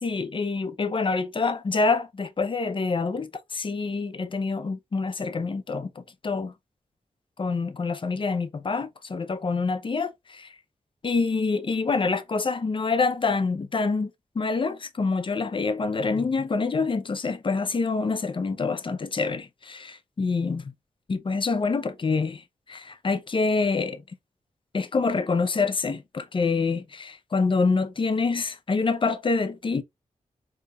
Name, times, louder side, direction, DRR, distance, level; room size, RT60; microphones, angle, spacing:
voice 1, 0.0-6.5 7.4-10.5 11.0-14.1 14.4-20.7 21.1-24.0 24.7-29.8, left 4 dB, 40° left, 0.5 m, -26 dB
4.0 x 2.8 x 2.3 m
cardioid pair, 75°, 13 cm